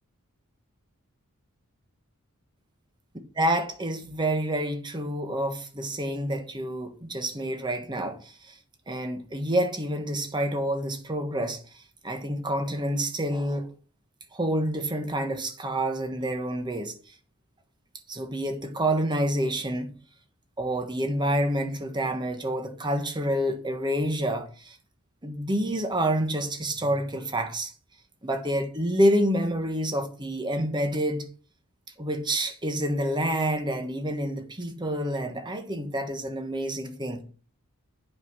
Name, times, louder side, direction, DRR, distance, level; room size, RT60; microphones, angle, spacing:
voice 1, 3.3-8.6 8.9-11.6 12.0-13.7 14.3-16.9 18.1-19.9 20.6-24.8 25.2-27.7 28.2-31.2 32.0-37.2, right 1 dB, 20° right, 1.3 m, -28 dB
9.5 x 5.5 x 6.1 m
head